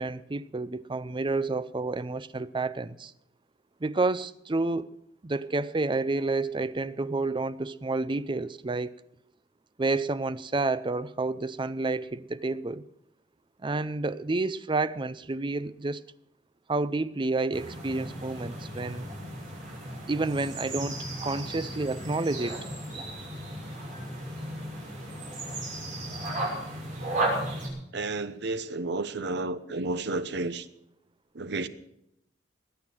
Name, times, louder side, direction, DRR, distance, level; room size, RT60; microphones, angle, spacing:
voice 1, 0.0-3.1 3.8-5.0 5.2-8.9 9.8-12.8 13.6-16.1 16.7-19.1 20.1-22.6, right 3 dB, 25° right, 0.5 m, -30 dB
sound 1, 17.5-27.7, right 1 dB, 45° right, 6.0 m, -35 dB
voice 2, 27.9-30.7 31.3-31.7, right 2 dB, 65° right, 0.9 m, -31 dB
21.0 x 9.2 x 6.3 m
head